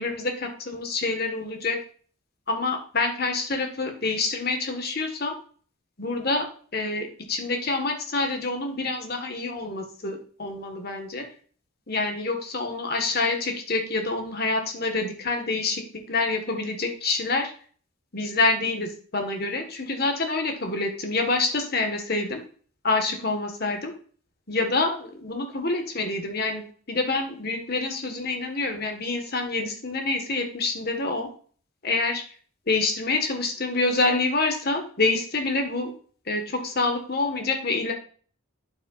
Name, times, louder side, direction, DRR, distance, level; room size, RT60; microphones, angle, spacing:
voice 1, 0.0-1.8 2.5-5.3 6.0-6.5 6.7-11.2 11.9-15.8 16.1-17.5 18.1-22.4 22.8-23.9 24.5-31.3 31.8-32.2 32.7-35.9 36.2-37.9, left 3 dB, 45° left, 4 dB, 1.6 m, -27 dB
8.6 x 7.4 x 2.5 m, 0.44 s
head